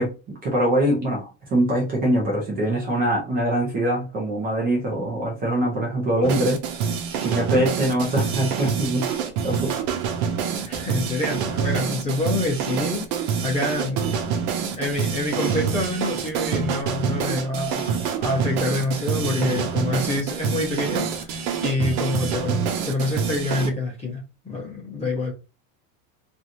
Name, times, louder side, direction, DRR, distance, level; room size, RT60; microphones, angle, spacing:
voice 1, 0.0-6.6 7.2-9.1 9.4-9.8 10.5-10.7 19.2-19.5 25.0-25.1, right 1 dB, 20° right, 0.7 m, -23 dB
sound 1, 6.2-23.7, right 7 dB, 90° right, 0.9 m, -26 dB
voice 2, 10.6-13.0 13.4-14.3 14.7-25.3, left 2 dB, 15° left, 0.7 m, -27 dB
2.9 x 2.6 x 2.6 m
supercardioid pair, 170°, 42 cm